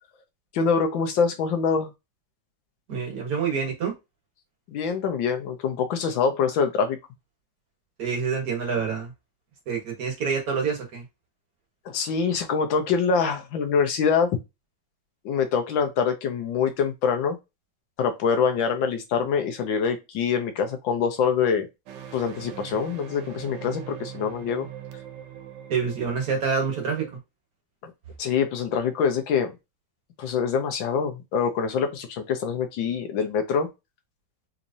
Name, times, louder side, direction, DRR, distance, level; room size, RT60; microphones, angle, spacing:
voice 1, 0.5-1.9 4.7-7.0 11.8-14.4 15.2-17.4 18.0-21.7 22.1-24.7 27.8-27.9 28.2-29.5 30.2-33.7, left 6 dB, 80° left, 1.6 m, -25 dB
voice 2, 2.9-3.9 8.0-9.1 9.7-11.0 25.7-27.2, right 6 dB, 55° right, 1.6 m, -27 dB
sound 1, 21.9-27.2, right 10 dB, 70° right, 1.2 m, -41 dB
4.1 x 3.0 x 2.6 m
omnidirectional pair, 2.1 m